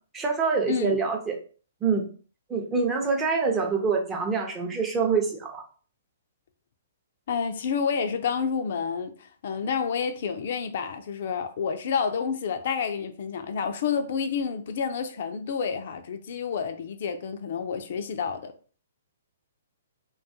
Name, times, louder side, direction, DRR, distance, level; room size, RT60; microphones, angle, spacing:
voice 1, 0.1-1.4 1.8-2.1 2.5-5.6, right 5 dB, 15° right, 0.5 m, -25 dB
voice 2, 0.7-1.0 7.3-18.5, left 6 dB, 60° left, 0.3 m, -29 dB
2.3 x 2.3 x 2.6 m
hypercardioid pair, 125°, 0 cm